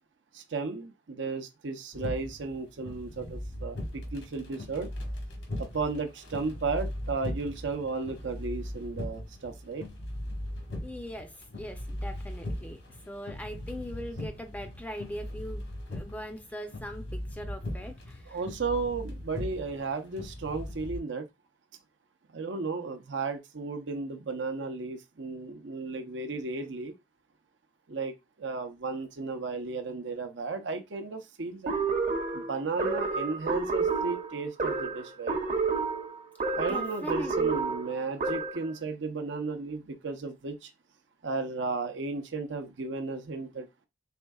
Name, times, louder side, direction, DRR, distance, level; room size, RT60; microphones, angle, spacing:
voice 1, 0.3-4.9 5.6-9.9 18.3-21.3 22.3-26.9 27.9-28.1 28.4-31.8 32.3-35.4 36.5-40.7 41.2-43.9, right 4 dB, 75° right, 0.6 m, -34 dB
sound 1, 1.9-21.0, left 1 dB, 75° left, 1.2 m, -39 dB
voice 2, 10.8-18.4 36.7-37.7, equal, 10° left, 0.4 m, -41 dB
sound 2, 31.7-38.7, right 4 dB, 40° right, 0.7 m, -30 dB
4.3 x 3.5 x 2.3 m
head